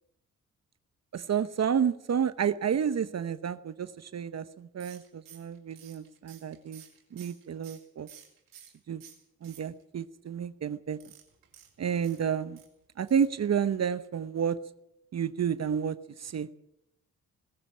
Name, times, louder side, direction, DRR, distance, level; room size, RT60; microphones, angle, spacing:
voice 1, 1.1-6.8 7.1-8.1 8.9-9.0 9.4-11.0 11.8-12.6 13.0-14.6 15.1-16.5, right 7 dB, 55° right, 14 dB, 0.9 m, -30 dB
sound 1, 4.8-8.8 9.0-10.0 10.9-12.7 13.1-13.4 13.7-13.8 14.0-14.1, right 9 dB, 90° right, 4.4 m, -53 dB
20.0 x 15.5 x 8.7 m, 0.84 s
cardioid pair, 60°, 32 cm